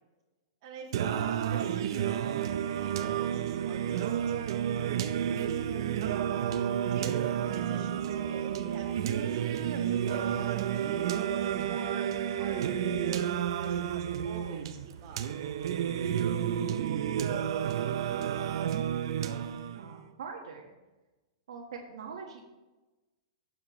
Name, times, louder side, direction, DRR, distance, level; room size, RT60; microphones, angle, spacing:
voice 1, 0.6-5.9 6.9-11.1 11.7-15.2, right 5 dB, 40° right, -2 dB, 2.4 m, -47 dB
Singing, 0.9-19.9, right 9 dB, 60° right, 0.6 m, -31 dB
voice 2, 19.1-20.7 21.5-22.4, right 5 dB, 85° right, 0 dB, 1.5 m, -44 dB
14.0 x 7.3 x 3.1 m, 1.1 s
hypercardioid pair, 160°, 3 cm